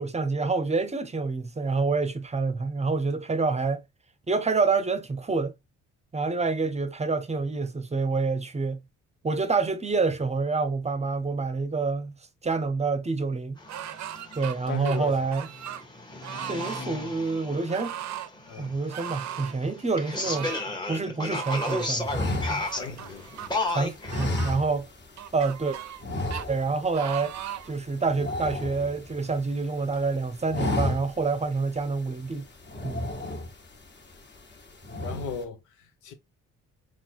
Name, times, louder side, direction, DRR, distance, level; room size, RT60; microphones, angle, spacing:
voice 1, 0.0-3.8 4.3-5.5 6.1-8.8 9.2-12.1 12.4-13.6 14.4-15.5 16.5-17.9 18.6-20.5 20.9-22.6 23.7-24.9 25.3-25.8 26.5-27.3 27.7-32.5 32.8-33.1, right 4 dB, 20° right, 0.7 m, -27 dB
sound 1, 13.6-24.3, left 2 dB, 15° left, 1.2 m, -35 dB
sound 2, 13.7-14.5 14.8-15.8 16.2-16.8 17.7-18.3 18.9-19.6 20.2-20.7 21.3-21.9 22.6-23.5 24.1-24.5 25.2-26.0 26.3-26.5 26.9-27.7 28.3-28.4, right 11 dB, 65° right, 0.6 m, -37 dB
voice 2, 14.7-15.3 18.5-18.7 22.7-23.5 35.0-36.1, left 5 dB, 85° left, 0.9 m, -37 dB
sound 3, 22.0-23.5 24.0-25.1 25.4-25.6 26.0-26.9 27.2-27.4 27.7-29.4 29.8-30.1 30.4-31.3 31.8-31.9 32.6-33.8 34.2-34.6 34.8-35.4, left 2 dB, 35° left, 1.5 m, -31 dB
3.9 x 2.3 x 4.5 m
cardioid pair, 90°, 30 cm